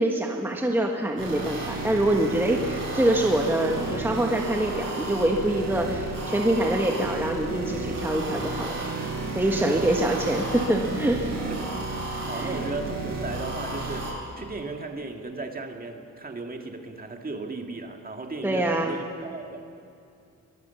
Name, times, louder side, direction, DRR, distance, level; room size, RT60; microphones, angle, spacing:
voice 1, 0.0-8.8 9.3-11.2 12.4-12.6 18.4-19.0, right 1 dB, 5° right, 1 dB, 1.6 m, -25 dB
sound 1, 1.2-14.1, right 3 dB, 80° right, 7.9 m, -32 dB
voice 2, 11.5-19.8, right 3 dB, 25° right, 3 dB, 2.0 m, -36 dB
23.5 x 19.5 x 7.1 m, 2.5 s
cardioid pair, 120°, 33 cm